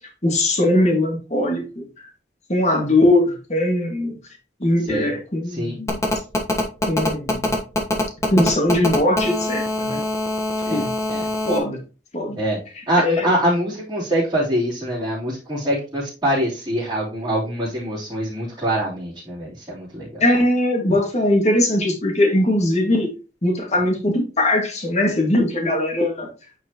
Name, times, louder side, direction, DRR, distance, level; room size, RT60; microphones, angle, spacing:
voice 1, 0.2-1.9 2.5-4.2 4.6-6.0 6.9-7.5 8.3-10.0 10.7-10.9 11.5-11.8 12.1-12.4 12.8-13.3 20.2-23.1 23.4-26.3, left 1 dB, 40° left, 2 dB, 1.9 m, -20 dB
Telephone, 5.9-11.6, left 1 dB, 15° left, 1.1 m, -23 dB
voice 2, 10.6-11.3 12.4-12.6 12.9-20.2, right 1 dB, 20° right, -11 dB, 3.3 m, -24 dB
9.3 x 4.7 x 2.9 m, 0.33 s
head